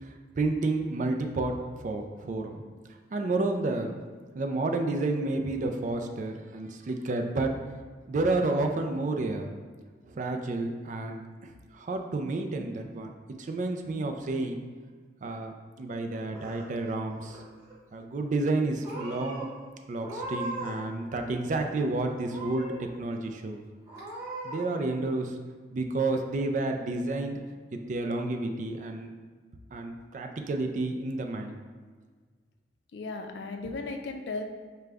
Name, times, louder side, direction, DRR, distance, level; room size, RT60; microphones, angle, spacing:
voice 1, 0.0-2.6 3.1-3.9 4.3-7.6 8.1-9.5 10.0-13.1 13.4-14.6 15.2-17.4 17.9-19.5 19.9-23.6 24.4-25.4 25.7-27.4 27.7-29.1 29.7-31.6, right 2 dB, 45° right, 4 dB, 0.3 m, -30 dB
Purr / Meow, 16.0-16.9 17.2-17.8 18.4-18.6 18.8-19.5 20.0-20.8 21.1-21.8 22.3-22.9 23.3-23.4 23.9-24.6, right 2 dB, 15° right, 1.1 m, -39 dB
voice 2, 32.9-34.4, left 3 dB, 75° left, 4 dB, 0.4 m, -36 dB
4.9 x 2.2 x 3.4 m, 1.5 s
head